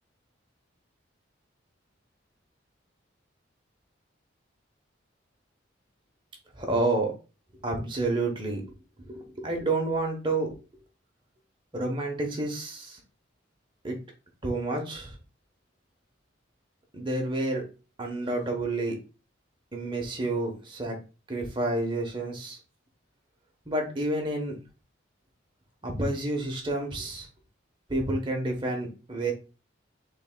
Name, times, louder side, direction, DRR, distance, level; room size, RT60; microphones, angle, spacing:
voice 1, 6.5-7.1 7.6-8.7 9.1-10.6 11.7-13.0 13.8-14.0 14.4-15.1 16.9-17.7 18.0-19.0 19.7-21.0 21.3-22.6 23.7-24.6 25.8-27.3 27.9-29.3, right 2 dB, 25° right, 2 dB, 1.1 m, -29 dB
6.7 x 3.4 x 2.3 m, 0.32 s
head